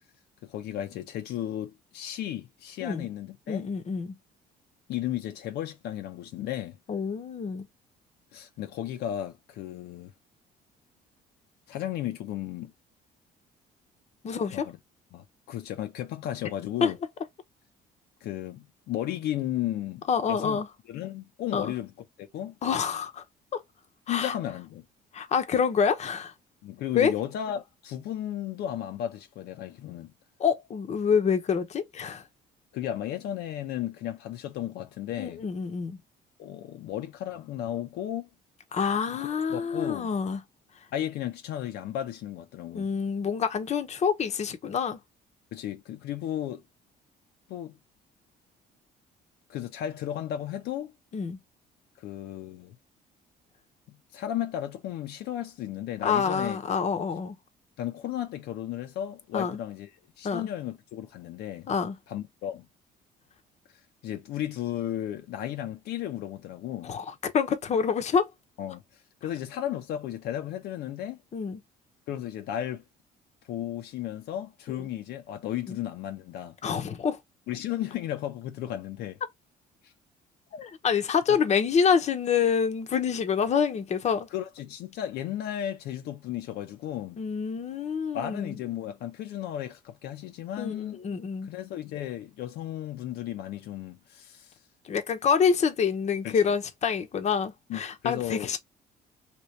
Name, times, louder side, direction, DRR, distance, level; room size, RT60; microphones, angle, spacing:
voice 1, 0.4-3.7 4.9-6.8 8.3-10.1 11.7-12.7 14.5-14.8 15.1-17.0 18.2-20.6 20.9-21.9 22.2-22.6 24.1-24.8 26.6-30.1 32.7-35.4 36.4-38.3 39.2-40.1 40.9-42.9 45.5-46.6 47.5-47.8 49.5-50.9 52.0-52.8 53.9-56.6 57.8-59.9 60.2-61.7 62.1-62.7 64.0-66.9 68.6-68.8 69.2-71.2 72.1-72.8 73.5-76.6 77.5-79.2 79.8-79.9 84.3-87.2 88.1-91.0 91.5-94.5 96.2-96.4 97.7-98.5, left 11 dB, 75° left, 0.7 m, -34 dB
voice 2, 3.5-4.2 6.9-7.7 14.2-14.7 16.8-16.9 20.1-20.7 21.5-21.7 22.6-23.2 23.5-23.6 24.1-24.4 25.1-26.3 26.9-27.1 30.4-32.3 35.2-36.0 38.7-40.4 42.7-45.0 51.1-51.4 56.0-57.4 59.3-59.6 60.2-60.5 61.7-62.0 66.8-68.3 71.3-71.6 74.7-74.9 75.7-75.8 76.6-77.2 80.5-84.3 87.2-88.6 90.6-91.5 94.8-98.6, left 6 dB, 40° left, 0.8 m, -27 dB
3.0 x 2.9 x 3.1 m
cardioid pair, 110°, 17 cm